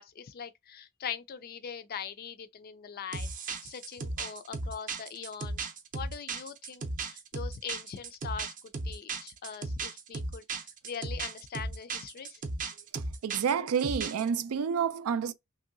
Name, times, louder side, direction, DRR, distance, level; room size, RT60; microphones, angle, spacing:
voice 1, 0.0-3.3 3.6-5.7 5.9-12.4, left 7 dB, 45° left, 0.4 m, -42 dB
sound 1, 3.1-14.3, right 3 dB, 40° right, 0.6 m, -36 dB
voice 2, 12.9-15.3, right 7 dB, 80° right, 0.4 m, -29 dB
2.9 x 2.7 x 2.6 m
head